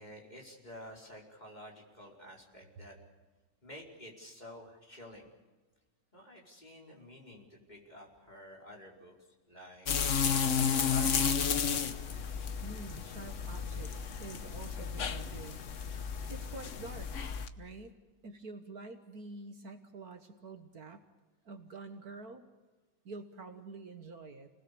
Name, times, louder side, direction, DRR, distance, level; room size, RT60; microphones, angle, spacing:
voice 1, 0.0-3.0 3.6-5.3 6.1-9.9 10.8-11.9, equal, 25° left, -2 dB, 5.0 m, -51 dB
sound 1, 9.9-17.5, left 6 dB, 50° left, 1.2 m, -32 dB
voice 2, 12.6-16.0 16.3-17.1 17.6-18.0 18.2-21.1 21.4-22.4 23.1-24.5, right 3 dB, 60° right, 6 dB, 1.8 m, -47 dB
29.5 x 19.5 x 6.9 m, 1.3 s
omnidirectional pair, 1.9 m